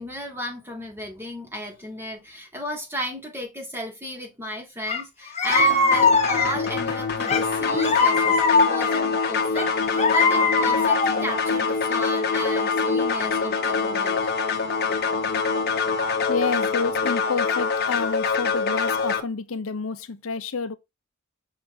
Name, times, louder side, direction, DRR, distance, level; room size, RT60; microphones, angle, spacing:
voice 1, 0.0-14.2, equal, 10° right, 2.3 m, -34 dB
sound 1, 4.9-5.0 5.4-6.7 7.3-9.0 9.6-11.3, left 3 dB, 30° left, 1.1 m, -21 dB
sound 2, 5.5-19.2, left 5 dB, 45° left, 1.4 m, -25 dB
voice 2, 16.3-20.8, left 4 dB, 65° left, 0.7 m, -29 dB
5.9 x 5.8 x 2.7 m
head